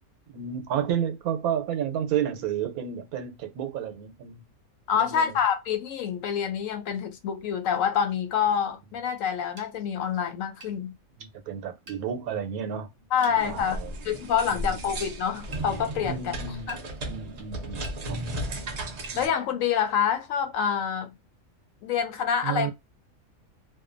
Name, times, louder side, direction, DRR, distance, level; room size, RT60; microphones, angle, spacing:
voice 1, 0.3-4.4 5.0-5.3 11.2-12.9 13.3-13.9 14.4-15.0 16.0-16.8 17.1-18.2 18.5-18.6 19.1-19.3 22.4-22.7, right 9 dB, 85° right, 1.1 m, -31 dB
voice 2, 4.9-10.9 13.1-13.8 14.0-16.3 16.7-16.8 19.1-21.1 21.8-22.7, left 8 dB, 70° left, 0.9 m, -27 dB
sound 1, 9.6-9.7 10.6-10.8 11.9-12.0 13.2-13.4 14.4-14.5 15.5-15.7 16.7-16.9 17.8-18.0 19.0-19.2, right 3 dB, 45° right, 0.9 m, -44 dB
sound 2, 13.4-19.3, right 1 dB, 65° right, 0.4 m, -35 dB
2.7 x 2.2 x 2.5 m
omnidirectional pair, 1.5 m